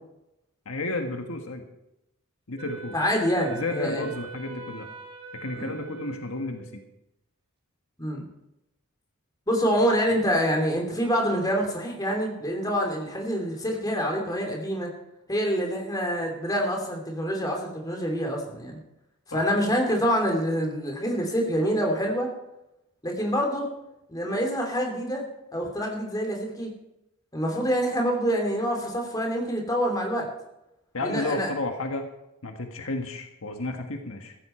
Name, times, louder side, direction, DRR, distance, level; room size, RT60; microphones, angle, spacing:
voice 1, 0.6-1.6 2.5-2.9 3.5-4.9 5.3-6.8 19.3-19.4 30.9-32.1 32.4-34.4, left 2 dB, 70° left, 4 dB, 1.5 m, -32 dB
Wind instrument woodwind instrument, 2.6-6.9, right 5 dB, 25° right, 2.2 m, -42 dB
voice 2, 2.9-4.0 5.5-5.7 8.0-8.2 9.5-14.9 15.3-18.8 19.3-22.3 23.0-23.7 24.1-25.2 25.5-26.7 27.3-30.3 31.0-31.5, equal, 20° left, 1 dB, 2.9 m, -26 dB
15.0 x 13.5 x 4.4 m, 0.88 s
head